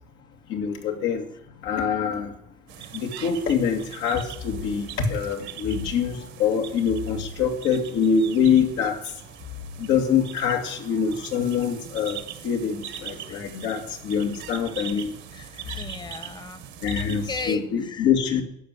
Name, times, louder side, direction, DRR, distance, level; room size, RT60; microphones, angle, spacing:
voice 1, 0.5-1.2 1.6-2.3 2.9-9.0 9.8-15.1 16.8-18.4, left 6 dB, 80° left, 2.4 m, -24 dB
sound 1, 2.7-17.6, right 10 dB, 75° right, 1.4 m, -41 dB
voice 2, 15.3-16.6 17.0-18.4, left 4 dB, 25° left, 1.2 m, -37 dB
11.5 x 6.4 x 9.4 m
cardioid pair, 125°, 19 cm